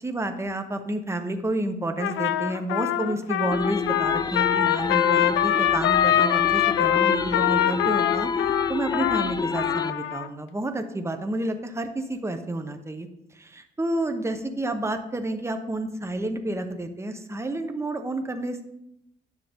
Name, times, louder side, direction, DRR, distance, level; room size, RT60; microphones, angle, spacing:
voice 1, 0.0-13.1 13.3-18.6, right 1 dB, 15° right, 7 dB, 1.0 m, -30 dB
Trumpet, 2.0-10.3, left 12 dB, 80° left, 0.5 m, -23 dB
sound 1, 3.5-9.9, left 5 dB, 20° left, 0.4 m, -29 dB
10.5 x 6.7 x 3.6 m, 0.82 s
cardioid pair, 90°, 20 cm